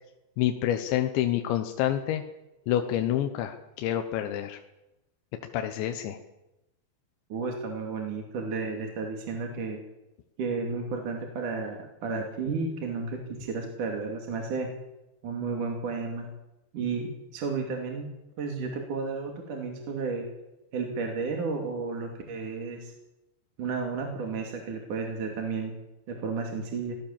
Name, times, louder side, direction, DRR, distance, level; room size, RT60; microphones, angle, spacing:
voice 1, 0.4-2.2 2.7-4.6 5.5-6.2, left 11 dB, 85° left, 6 dB, 3.4 m, -28 dB
voice 2, 7.3-9.8 10.4-14.7 15.2-16.3 16.7-18.1 18.4-20.2 20.7-22.9 23.6-25.7 26.1-27.0, right 4 dB, 50° right, 2 dB, 3.8 m, -32 dB
25.0 x 18.5 x 7.4 m, 0.96 s
omnidirectional pair, 5.1 m